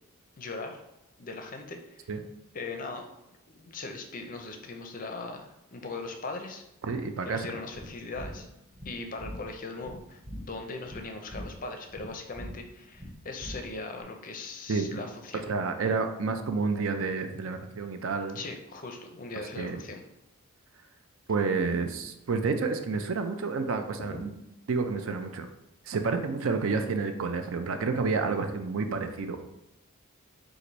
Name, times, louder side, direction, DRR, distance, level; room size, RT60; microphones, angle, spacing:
voice 1, 0.4-0.8 1.2-2.1 2.5-3.0 3.5-6.6 7.2-8.5 8.9-10.2 10.5-15.5 18.3-20.0 24.1-24.2, left 3 dB, 40° left, 4 dB, 0.5 m, -39 dB
voice 2, 6.8-7.5 14.7-14.9 15.5-18.4 19.6-19.8 21.3-24.3 24.7-25.5 25.9-29.4, right 4 dB, 65° right, 7 dB, 0.4 m, -29 dB
sound 1, 7.7-14.0, equal, 15° right, 0.6 m, -43 dB
4.6 x 2.5 x 3.9 m, 0.89 s
head